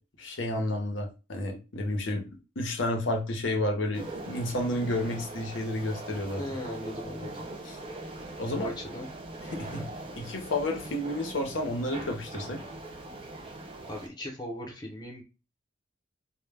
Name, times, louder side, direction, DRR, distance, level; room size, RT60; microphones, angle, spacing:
voice 1, 0.2-2.3 2.6-6.5 7.6-7.8 8.4-8.7 9.4-9.9 10.2-12.6, left 1 dB, 75° left, 0.7 m, -31 dB
sound 1, 3.9-14.1, right 2 dB, 25° right, 0.4 m, -41 dB
voice 2, 6.4-7.5 8.6-9.1 13.9-15.2, equal, 20° left, 0.7 m, -38 dB
2.1 x 2.1 x 3.3 m
head